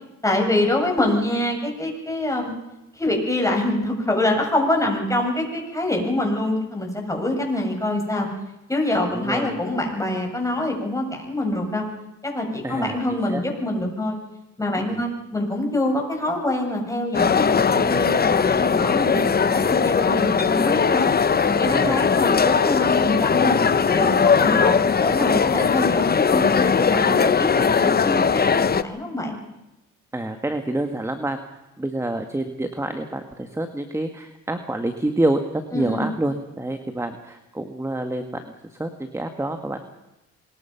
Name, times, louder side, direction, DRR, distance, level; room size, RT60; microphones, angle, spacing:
voice 1, 0.2-2.5 2.9-8.3 8.7-11.9 12.2-14.2 14.6-21.1 21.5-23.6 23.9-24.1 24.4-29.4 35.7-36.1, left 1 dB, 10° left, 1 dB, 7.6 m, -25 dB
voice 2, 9.1-9.6 12.6-13.4 14.9-15.0 19.1-19.3 21.6-22.0 24.5-24.6 30.1-31.4 31.8-39.8, right 1 dB, 10° right, 7 dB, 1.8 m, -27 dB
sound 1, 17.1-28.8, left 6 dB, 30° left, 1.0 m, -19 dB
25.5 x 21.0 x 5.9 m, 0.98 s
cardioid pair, 90°, 30 cm